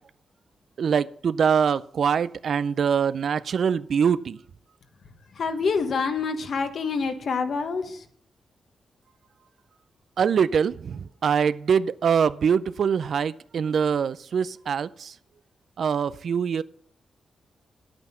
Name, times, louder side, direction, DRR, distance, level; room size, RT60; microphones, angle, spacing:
voice 1, 0.8-4.4 10.2-15.1 15.8-16.6, right 7 dB, 65° right, 0.4 m, -23 dB
voice 2, 5.3-8.1, left 5 dB, 65° left, 1.2 m, -27 dB
9.6 x 8.8 x 5.6 m
cardioid pair, 100°, 0 cm